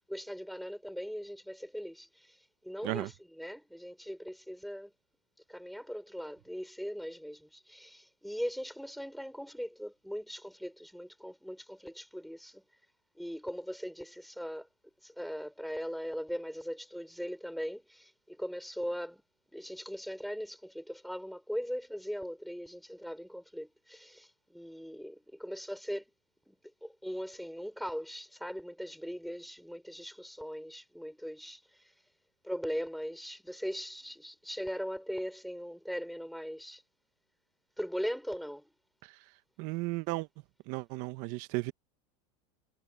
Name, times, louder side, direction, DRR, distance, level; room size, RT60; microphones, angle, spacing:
voice 1, 0.1-4.9 5.5-12.6 13.1-14.7 15.0-19.2 19.5-26.0 26.5-26.6 26.8-31.9 32.4-36.8 37.8-38.7, equal, ahead, 4.7 m, -40 dB
voice 2, 39.6-40.3 40.7-41.7, right 22 dB, 55° right, 1.3 m, -34 dB
supercardioid pair, 130°, 16 cm